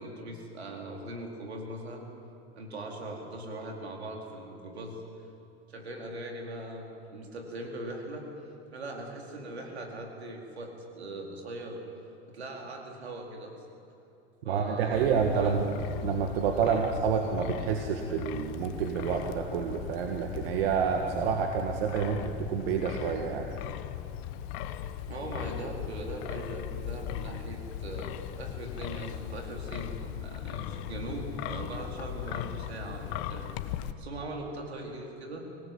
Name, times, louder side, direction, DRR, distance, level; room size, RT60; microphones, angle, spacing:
voice 1, 0.0-2.1 2.5-5.0 5.7-8.3 8.7-11.8 12.3-13.6 14.4-15.6 16.7-16.9 25.1-29.9 30.2-35.5, right 1 dB, 90° right, 1 dB, 4.6 m, -40 dB
voice 2, 14.5-15.6 16.0-23.5, right 6 dB, 65° right, 3 dB, 2.1 m, -28 dB
Wind, 14.9-33.9, left 11 dB, 55° left, 1.4 m, -38 dB
25.5 x 19.0 x 8.9 m, 2.7 s
hypercardioid pair, 100°, 31 cm